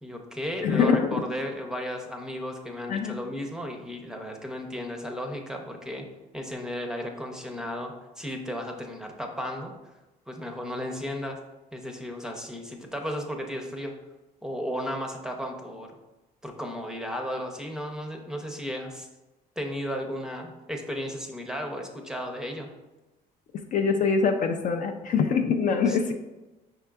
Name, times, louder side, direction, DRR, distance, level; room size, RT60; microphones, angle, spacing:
voice 1, 0.0-6.1 6.3-9.7 10.3-11.4 11.7-13.9 14.4-15.9 16.4-19.1 19.6-22.7 25.9-26.0, equal, 5° right, 3 dB, 0.6 m, -34 dB
voice 2, 0.6-1.2 2.9-3.2 23.7-26.1, left 5 dB, 50° left, 6 dB, 0.4 m, -24 dB
5.5 x 3.7 x 2.3 m, 1.1 s
cardioid pair, 110°, 17 cm